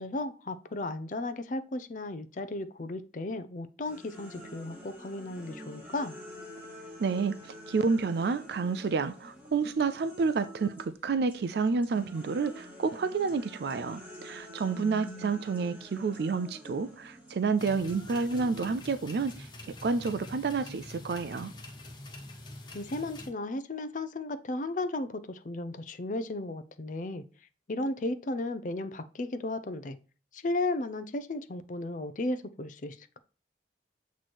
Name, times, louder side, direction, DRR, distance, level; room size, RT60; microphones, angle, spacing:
voice 1, 0.0-6.1 14.7-15.3 22.7-27.2 27.7-30.0 30.3-33.2, left 2 dB, 45° left, 0.5 m, -35 dB
sound 1, 3.8-10.9 11.3-19.8, equal, 10° right, 1.2 m, -49 dB
voice 2, 7.0-19.5 19.8-21.5, right 4 dB, 65° right, 0.4 m, -29 dB
sound 2, 17.6-23.3, left 1 dB, 25° left, 1.0 m, -45 dB
8.0 x 3.1 x 4.2 m
head